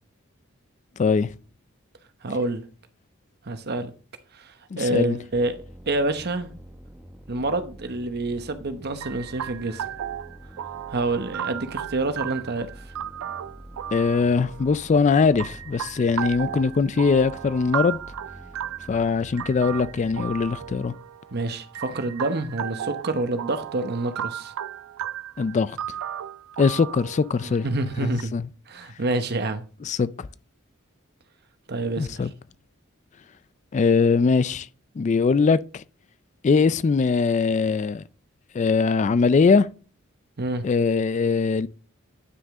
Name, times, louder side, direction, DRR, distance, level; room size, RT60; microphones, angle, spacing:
voice 1, 1.0-1.3 4.7-5.2 13.9-18.0 18.9-20.9 25.4-26.0 26.6-27.7 28.0-28.1 28.3-28.4 29.8-30.3 32.0-32.3 33.7-34.7 35.0-35.8 36.4-38.0 38.5-39.7 40.6-41.7, left 4 dB, 35° left, 0.3 m, -21 dB
voice 2, 2.2-2.6 3.4-3.9 4.3-5.6 5.9-6.5 7.3-9.9 10.9-12.9 21.3-24.5 27.4-28.3 28.7-29.6 31.7-32.1 40.4-40.6, right 2 dB, 50° right, 0.9 m, -27 dB
sound 1, 5.3-20.8, equal, 5° right, 0.8 m, -46 dB
sound 2, 9.0-28.2, right 10 dB, 80° right, 0.4 m, -35 dB
9.5 x 6.2 x 3.6 m
head